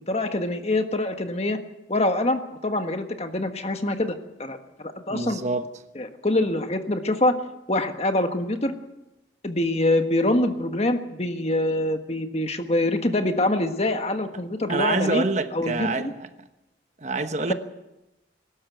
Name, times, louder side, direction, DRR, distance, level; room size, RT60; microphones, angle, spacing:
voice 1, 0.1-1.6 1.9-5.4 5.9-7.4 7.7-8.7 9.4-15.2 15.5-16.1, left 1 dB, 35° left, 1.5 m, -25 dB
voice 2, 5.1-5.7 14.7-16.3 17.0-17.5, right 3 dB, 40° right, 1.2 m, -26 dB
23.0 x 13.0 x 9.2 m
head